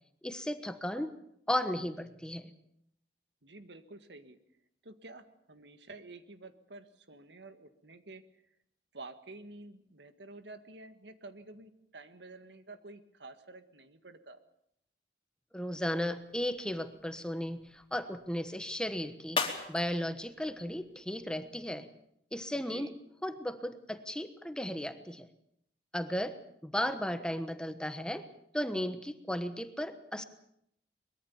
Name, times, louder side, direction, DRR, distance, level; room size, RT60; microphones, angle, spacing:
voice 1, 0.2-1.1 1.5-2.5 15.5-21.9 22.3-22.9 23.2-25.3 25.9-26.4 26.6-28.3 28.5-30.2, equal, 5° left, 9 dB, 1.2 m, -35 dB
voice 2, 3.4-4.4 4.8-8.4 8.9-14.4 22.5-23.0, right 2 dB, 85° right, 10 dB, 1.8 m, -50 dB
sound 1, 15.7-21.7, left 4 dB, 30° left, 3.2 m, -42 dB
23.5 x 21.5 x 7.2 m, 0.73 s
head